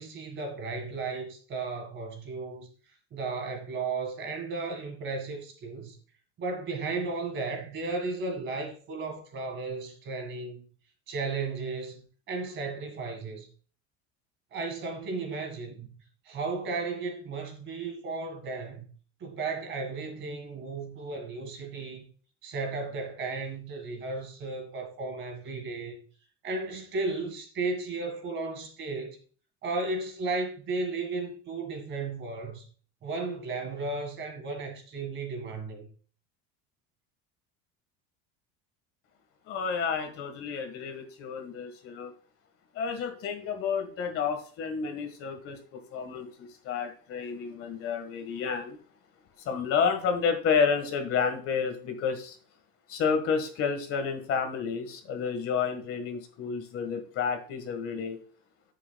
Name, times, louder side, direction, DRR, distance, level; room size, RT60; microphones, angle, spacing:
voice 1, 0.0-2.7 3.1-6.0 6.4-10.6 11.1-13.5 14.5-15.9 16.3-18.9 19.2-22.1 22.4-26.0 26.4-29.2 29.6-32.6 33.0-35.9, right 3 dB, 35° right, 1.9 m, -34 dB
voice 2, 39.5-42.1 42.7-48.8 49.4-52.4 52.9-58.2, left 6 dB, 40° left, 1.5 m, -30 dB
10.0 x 7.6 x 2.3 m
cardioid pair, 165°, 33 cm